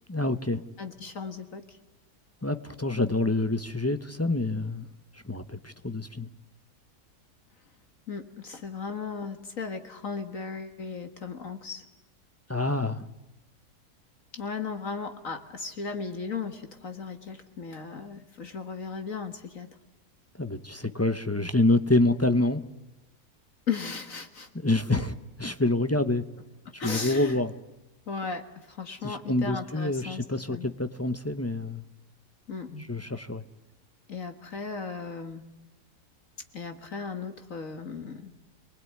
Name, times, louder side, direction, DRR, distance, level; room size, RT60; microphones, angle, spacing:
voice 1, 0.1-0.6 2.4-4.9 5.1-6.3 12.5-13.1 20.4-22.7 24.5-26.2 26.7-27.5 29.0-31.8 32.9-33.4, left 2 dB, 15° left, 10 dB, 0.7 m, -27 dB
voice 2, 0.8-1.8 8.1-11.8 14.3-19.7 23.7-24.5 24.9-25.0 26.8-27.4 28.1-30.2 30.5-30.7 32.5-32.9 33.2-33.3 34.1-35.4 36.5-38.3, left 5 dB, 55° left, 8 dB, 2.0 m, -36 dB
27.5 x 20.0 x 9.5 m, 0.99 s
omnidirectional pair, 1.7 m